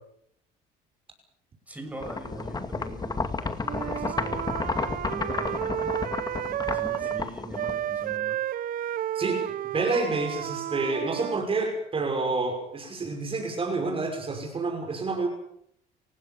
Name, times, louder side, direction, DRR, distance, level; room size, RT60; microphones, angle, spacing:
voice 1, 1.7-5.9 6.6-8.4, right 1 dB, 10° right, 4 dB, 6.9 m, -42 dB
sound 1, 2.0-8.1, left 4 dB, 25° left, 2.3 m, -31 dB
Wind instrument woodwind instrument, 3.6-7.3 7.5-11.4, right 11 dB, 60° right, 0.8 m, -32 dB
voice 2, 9.7-15.3, right 3 dB, 35° right, 2 dB, 5.9 m, -28 dB
29.5 x 16.0 x 7.2 m, 0.70 s
cardioid pair, 110°, 17 cm